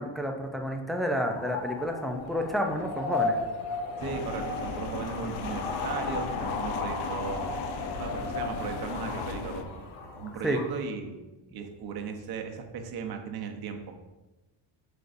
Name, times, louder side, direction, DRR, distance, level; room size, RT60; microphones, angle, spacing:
voice 1, 0.0-3.4 10.4-10.6, equal, ahead, 2 dB, 0.4 m, -30 dB
sound 1, 1.0-10.8, left 3 dB, 80° left, 1.5 m, -35 dB
sound 2, 4.0-9.6, left 5 dB, 55° left, 0.6 m, -37 dB
voice 2, 4.0-7.5 8.0-9.7 10.1-11.2 11.5-14.0, right 6 dB, 50° right, 4 dB, 1.0 m, -37 dB
7.9 x 6.9 x 2.6 m, 1.1 s
cardioid pair, 150°, 49 cm